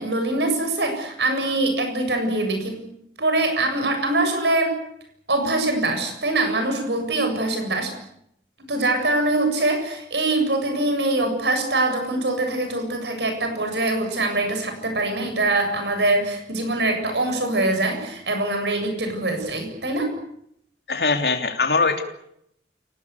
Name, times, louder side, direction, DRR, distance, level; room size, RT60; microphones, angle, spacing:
voice 1, 0.0-2.8 3.2-4.8 5.3-7.9 8.7-20.1, right 2 dB, 75° right, 6 dB, 7.6 m, -23 dB
voice 2, 20.9-22.0, left 4 dB, 65° left, 6 dB, 3.1 m, -21 dB
29.0 x 18.5 x 8.4 m, 0.74 s
head